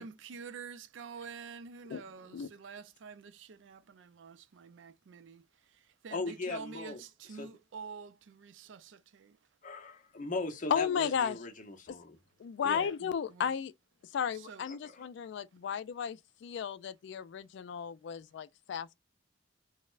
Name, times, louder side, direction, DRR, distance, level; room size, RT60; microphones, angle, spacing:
voice 1, 0.0-5.4 6.0-9.4 12.8-12.9 13.3-13.5 14.5-14.6, right 5 dB, 75° right, 0.4 m, -47 dB
voice 2, 1.9-2.5 10.7-11.4 12.4-13.7 14.1-18.9, left 7 dB, 70° left, 0.3 m, -34 dB
voice 3, 6.1-7.0 7.3-7.5 9.6-12.2 12.6-12.9 14.7-15.1, left 3 dB, 45° left, 0.7 m, -39 dB
4.0 x 2.1 x 2.4 m
head